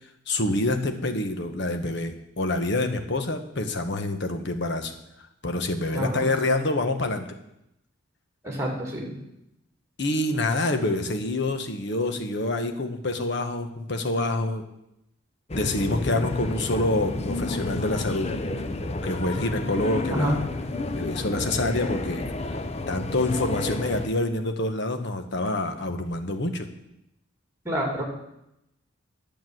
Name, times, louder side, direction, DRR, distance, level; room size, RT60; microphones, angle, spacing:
voice 1, 0.3-5.0 5.4-7.3 10.0-14.6 15.5-18.3 19.0-20.4 20.9-22.6 22.9-26.7, left 2 dB, 55° left, 7 dB, 1.1 m, -27 dB
voice 2, 5.9-6.3 8.4-9.1 20.1-20.4 27.6-28.0, equal, 15° right, 0 dB, 2.6 m, -27 dB
sound 1, 15.5-24.1, left 2 dB, 30° left, 0.6 m, -30 dB
10.0 x 7.0 x 7.7 m, 0.84 s
head